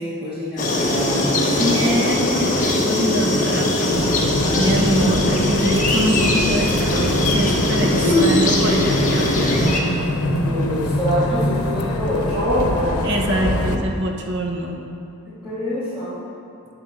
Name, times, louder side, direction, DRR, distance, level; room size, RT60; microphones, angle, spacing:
voice 1, 0.0-2.0 8.0-8.4 10.2-13.0 13.3-13.5 15.3-16.2, equal, 5° right, -16 dB, 2.7 m, -24 dB
sound 1, 0.6-9.8, left 1 dB, 35° left, 1.3 m, -21 dB
voice 2, 1.4-9.3 13.0-14.8, equal, 55° right, 1 dB, 1.2 m, -24 dB
sound 2, 3.9-13.8, left 1 dB, 85° left, 0.9 m, -24 dB
9.3 x 7.1 x 6.8 m, 2.5 s
head